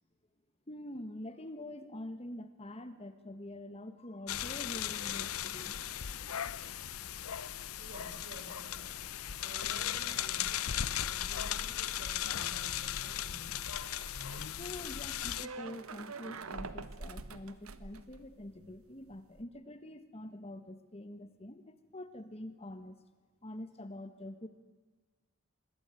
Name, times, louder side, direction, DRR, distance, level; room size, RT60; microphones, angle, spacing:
voice 1, 0.7-5.8 14.5-23.0 23.4-24.5, left 1 dB, 30° left, 11 dB, 1.4 m, -45 dB
sound 1, 4.3-15.5, left 10 dB, 85° left, 0.7 m, -37 dB
voice 2, 7.7-9.1 9.4-13.6, right 1 dB, 55° right, 5 dB, 5.1 m, -52 dB
sound 2, 13.3-18.8 19.1-19.4, right 3 dB, 85° right, 1.3 m, -46 dB
26.0 x 21.5 x 9.1 m, 1.4 s
head